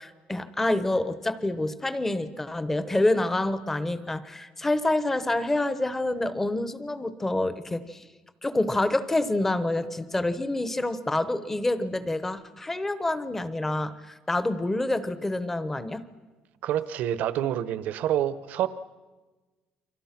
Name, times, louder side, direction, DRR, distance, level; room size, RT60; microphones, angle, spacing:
voice 1, 0.0-8.1 8.4-16.1, left 2 dB, 10° left, 13 dB, 1.0 m, -27 dB
voice 2, 16.6-18.7, right 11 dB, 60° right, 14 dB, 1.0 m, -27 dB
29.5 x 24.5 x 6.0 m, 1.3 s
cardioid pair, 175°, 3 cm